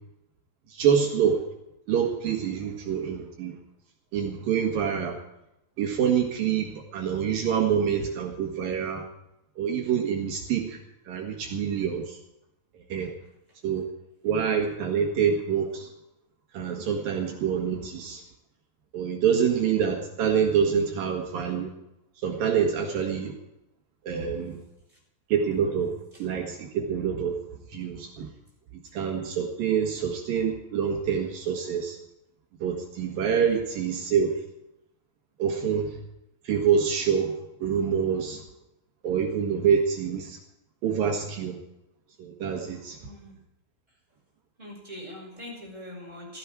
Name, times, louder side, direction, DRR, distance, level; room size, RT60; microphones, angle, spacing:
voice 1, 0.7-1.4 1.9-3.6 4.1-5.2 5.8-9.1 9.6-10.8 11.1-12.2 12.9-13.1 13.6-13.9 14.2-15.9 16.5-18.2 18.9-21.7 22.2-23.4 24.0-24.6 25.3-25.9 26.2-27.4 27.7-28.3 28.9-32.0 32.6-34.3 35.4-36.0 36.4-38.4 39.0-40.4 40.8-41.6 42.2-43.0, right 7 dB, 65° right, 2 dB, 3.0 m, -26 dB
voice 2, 43.0-43.4 44.6-46.4, left 1 dB, 10° right, -4 dB, 7.2 m, -42 dB
16.5 x 14.5 x 4.7 m, 0.87 s
omnidirectional pair, 4.9 m